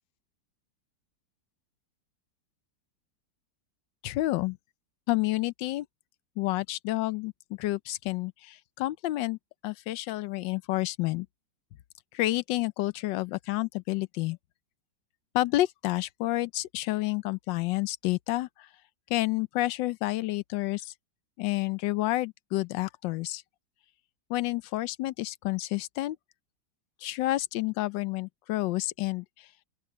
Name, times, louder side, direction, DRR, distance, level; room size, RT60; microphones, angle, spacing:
voice 1, 4.0-4.6 5.1-5.9 6.4-9.4 9.6-11.3 12.1-14.4 15.3-18.7 19.1-20.9 21.4-23.4 24.3-26.2 27.0-29.2, left 17 dB, 75° left, 1.3 m, -29 dB
open air
omnidirectional pair, 2.1 m